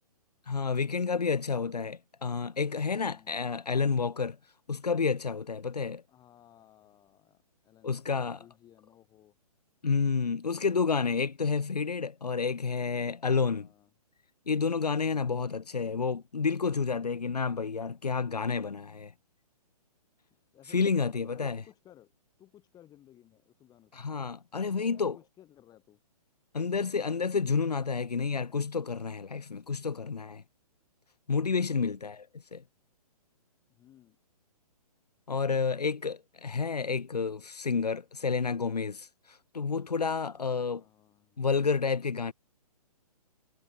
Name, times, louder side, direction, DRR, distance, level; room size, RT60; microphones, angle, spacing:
voice 1, 0.5-4.4 4.7-6.0 7.8-8.4 9.8-13.7 14.5-19.1 20.7-21.6 23.9-25.2 26.5-30.4 31.3-32.2 32.5-32.6 35.3-40.8 41.4-42.3, left 5 dB, 85° left, 1.2 m, -30 dB
voice 2, 2.8-3.5 6.1-9.4 13.4-13.9 15.0-15.5 20.3-22.1 22.4-24.3 24.5-26.0 31.6-32.1 33.7-34.2 40.3-41.5, left 12 dB, 20° left, 7.7 m, -58 dB
figure-of-eight pair, 130°, 20 cm